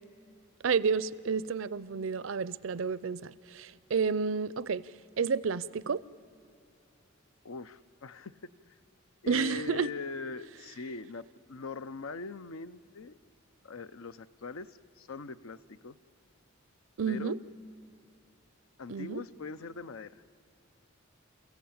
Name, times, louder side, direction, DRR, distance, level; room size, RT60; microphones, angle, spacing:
voice 1, 0.6-4.8 5.2-6.0 9.3-9.9 17.0-17.4 18.9-19.2, right 5 dB, 70° right, 19 dB, 0.5 m, -30 dB
voice 2, 7.4-8.5 9.2-13.1 13.6-15.9 17.1-17.3 18.8-20.2, left 4 dB, 80° left, 14 dB, 0.7 m, -41 dB
28.5 x 15.5 x 8.7 m, 2.7 s
head